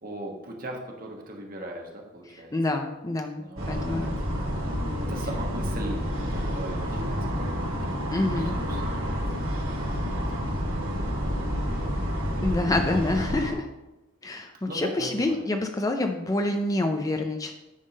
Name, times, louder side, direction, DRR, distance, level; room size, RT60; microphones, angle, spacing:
voice 1, 0.0-2.5 3.4-4.1 5.0-7.7 8.1-12.0 14.6-15.5, right 1 dB, 45° right, 1 dB, 1.3 m, -40 dB
voice 2, 2.3-4.1 8.1-8.5 12.4-13.7 14.2-17.5, left 2 dB, 15° left, 5 dB, 0.4 m, -27 dB
sound 1, 3.6-13.5, equal, 80° right, 2.5 m, -29 dB
9.9 x 3.6 x 5.3 m, 1.0 s
head